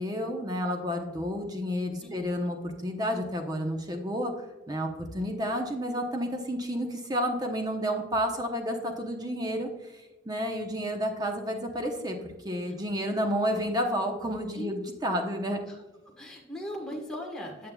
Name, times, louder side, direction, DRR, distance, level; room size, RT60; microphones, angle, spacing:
voice 1, 0.0-4.3 4.7-9.7 10.2-12.2 12.4-15.6, equal, 20° right, 3 dB, 0.8 m, -30 dB
voice 2, 2.0-2.4 12.7-12.8 14.5-14.7 15.1-15.2 15.6-15.8 16.2-17.7, left 1 dB, 5° left, -2 dB, 1.5 m, -39 dB
8.9 x 7.3 x 2.3 m, 1.1 s
head